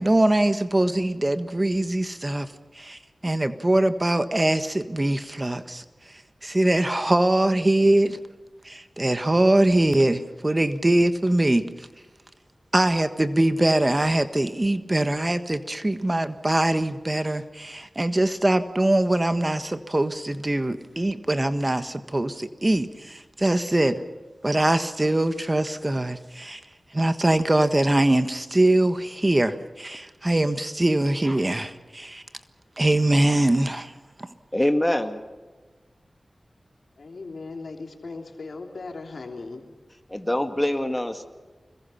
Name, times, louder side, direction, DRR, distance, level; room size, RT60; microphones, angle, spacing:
voice 1, 0.0-2.5 2.7-5.8 6.4-8.2 8.6-11.6 12.7-24.0 24.4-26.6 26.9-32.2 32.8-33.9, right 1 dB, 30° right, 10 dB, 1.4 m, -22 dB
voice 2, 34.5-35.2 40.1-41.3, left 1 dB, 15° left, 6 dB, 2.1 m, -24 dB
voice 3, 37.0-39.7, left 3 dB, 75° left, 3 dB, 3.3 m, -38 dB
26.0 x 22.0 x 5.8 m, 1.3 s
cardioid pair, 45°, 0 cm